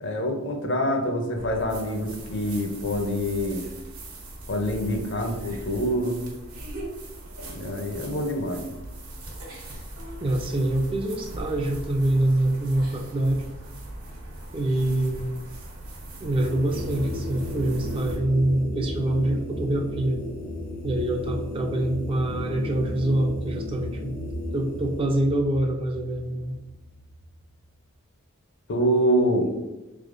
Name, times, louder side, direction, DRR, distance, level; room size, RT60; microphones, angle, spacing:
voice 1, 0.0-3.7 4.5-6.2 7.5-8.7 28.7-29.5, equal, 55° left, 3 dB, 0.6 m, -26 dB
sound 1, 1.4-18.2, right 1 dB, 80° right, 1.0 m, -40 dB
voice 2, 10.2-13.5 14.5-15.5 16.2-20.2 20.8-24.2 24.5-26.6, right 1 dB, 25° right, 3 dB, 0.3 m, -25 dB
sound 2, 16.2-27.5, left 1 dB, 75° left, 1.1 m, -34 dB
3.4 x 3.4 x 2.5 m, 1.0 s
head